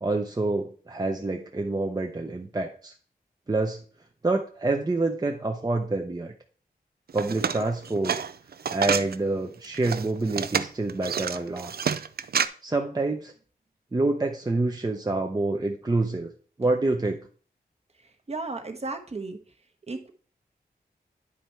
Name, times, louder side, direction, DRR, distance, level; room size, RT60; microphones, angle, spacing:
voice 1, 0.0-2.9 3.5-3.8 4.2-6.3 7.1-8.1 8.7-11.7 12.6-13.3 13.9-16.3 16.6-17.2, right 2 dB, 25° right, 3 dB, 0.7 m, -27 dB
sound 1, 7.1-9.1 9.6-12.5, right 7 dB, 70° right, 0.5 m, -28 dB
voice 2, 18.0-19.4 19.9-20.1, right 3 dB, 40° right, 5 dB, 1.1 m, -34 dB
9.8 x 4.3 x 4.5 m, 0.43 s
wide cardioid pair, 105°, 17 cm